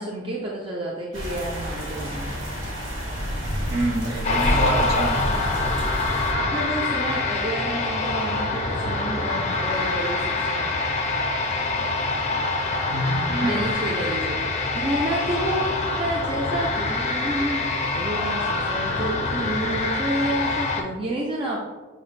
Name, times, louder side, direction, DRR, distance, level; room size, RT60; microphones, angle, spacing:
voice 1, 0.0-2.4 6.3-10.7 13.4-21.6, right 1 dB, 25° right, -2 dB, 0.4 m, -29 dB
sound 1, 1.1-6.3, equal, 75° right, 1.3 m, -29 dB
voice 2, 3.7-5.4 6.4-6.5 12.9-13.7, right 1 dB, 55° right, 0 dB, 1.0 m, -26 dB
sound 2, 4.2-20.8, left 3 dB, 35° left, 0.5 m, -25 dB
5.9 x 2.4 x 3.1 m, 1.3 s
head